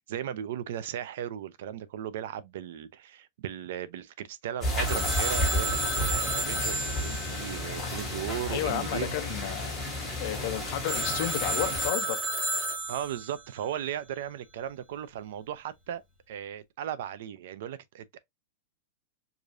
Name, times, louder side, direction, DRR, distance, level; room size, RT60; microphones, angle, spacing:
voice 1, 0.1-9.1 12.9-16.0 16.3-18.2, right 10 dB, 55° right, 0.4 m, -36 dB
sound 1, 4.6-11.9, left 1 dB, 10° left, 1.7 m, -32 dB
Telephone, 4.9-8.5 10.9-13.4, right 1 dB, 10° right, 1.0 m, -32 dB
voice 2, 8.5-9.8 10.2-12.2, left 12 dB, 40° left, 0.5 m, -32 dB
4.8 x 2.6 x 2.5 m
supercardioid pair, 180°, 0 cm